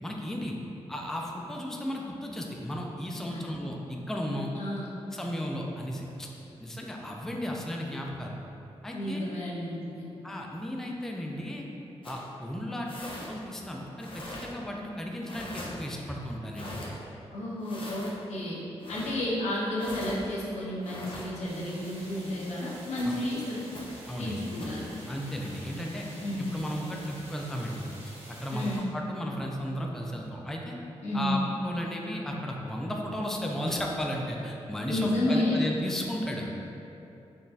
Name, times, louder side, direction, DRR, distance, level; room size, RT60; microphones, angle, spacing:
voice 1, 0.0-0.6 0.9-4.5 5.1-6.3 6.6-8.4 8.8-9.2 10.2-11.6 12.0-16.8 23.1-23.2 24.1-24.4 25.1-26.1 26.4-27.9 28.4-30.7 31.1-36.5, equal, 5° left, 0 dB, 0.3 m, -34 dB
voice 2, 4.5-4.9 8.9-10.1 17.3-23.6 24.2-24.9 26.2-26.5 28.5-28.9 31.0-31.4 34.9-35.6, left 1 dB, 90° left, -6 dB, 0.7 m, -31 dB
sound 1, 12.0-12.2 12.9-13.3 14.0-14.5 15.2-15.7 16.5-16.9 17.6-18.1 18.8-19.1 19.8-20.2 20.8-21.3 22.9-23.1 23.7-23.8 24.6-24.8, left 1 dB, 50° left, 0.6 m, -41 dB
sound 2, 21.4-28.8, right 1 dB, 80° right, 1.1 m, -48 dB
3.8 x 2.6 x 2.3 m, 2.9 s
cardioid pair, 85°, 11 cm